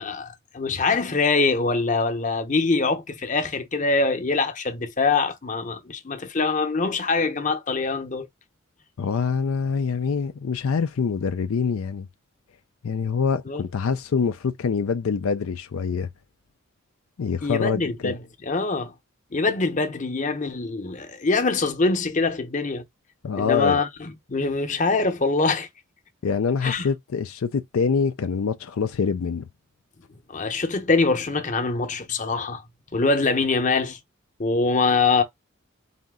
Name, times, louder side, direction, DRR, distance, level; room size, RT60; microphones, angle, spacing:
voice 1, 0.0-8.3 13.5-13.6 17.4-18.9 19.3-22.8 23.3-25.7 26.6-26.9 30.3-32.6 32.9-34.0 34.4-35.2, left 3 dB, 35° left, 0.8 m, -24 dB
voice 2, 9.0-12.1 12.8-16.1 17.2-18.1 23.2-23.8 26.2-29.4, left 5 dB, 85° left, 0.4 m, -25 dB
4.2 x 2.7 x 3.6 m
head